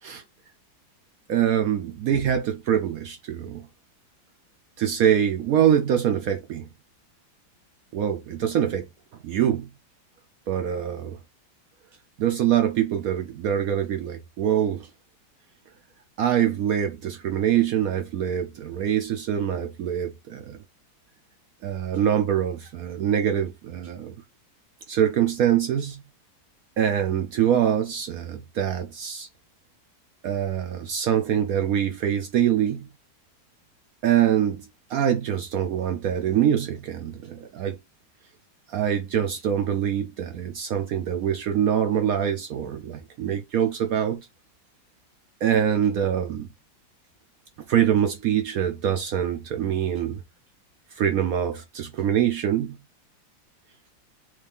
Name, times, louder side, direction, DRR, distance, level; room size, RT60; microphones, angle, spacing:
voice 1, 1.3-3.7 4.8-6.7 7.9-8.9 9.1-9.7 10.5-11.2 12.2-14.9 16.2-20.6 21.6-24.1 24.9-26.0 26.8-29.3 30.2-32.9 34.0-37.8 38.7-44.3 45.4-46.5 47.7-50.2 51.0-52.8, right 9 dB, 80° right, 0.8 m, -24 dB
3.2 x 3.1 x 3.5 m
omnidirectional pair, 2.1 m